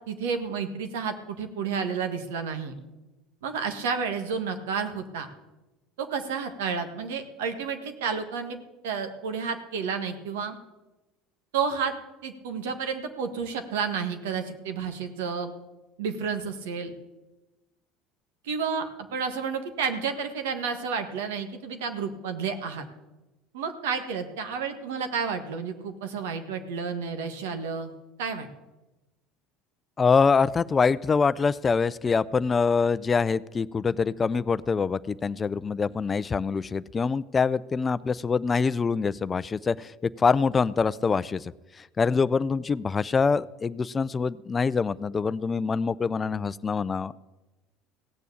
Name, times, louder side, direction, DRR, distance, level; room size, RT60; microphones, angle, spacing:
voice 1, 0.1-2.7 3.4-5.3 6.0-8.6 8.8-10.5 11.5-11.9 12.2-15.5 16.0-16.9 18.4-18.8 19.1-22.8 23.5-27.9 28.2-28.5, right 6 dB, 90° right, 7 dB, 1.6 m, -31 dB
voice 2, 30.0-41.5 41.8-47.1, left 5 dB, 25° left, 17 dB, 0.5 m, -25 dB
16.5 x 6.8 x 8.5 m, 1.1 s
supercardioid pair, 95°, 0 cm